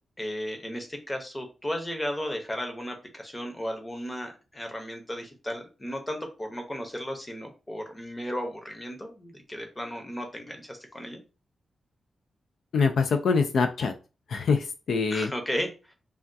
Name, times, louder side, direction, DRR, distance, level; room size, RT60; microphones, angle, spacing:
voice 1, 0.2-11.2 15.1-15.9, equal, 15° left, 4 dB, 0.8 m, -35 dB
voice 2, 12.7-13.9 14.3-15.3, left 5 dB, 75° left, 7 dB, 0.3 m, -24 dB
3.4 x 2.3 x 2.6 m, 0.31 s
wide cardioid pair, 120°, 0 cm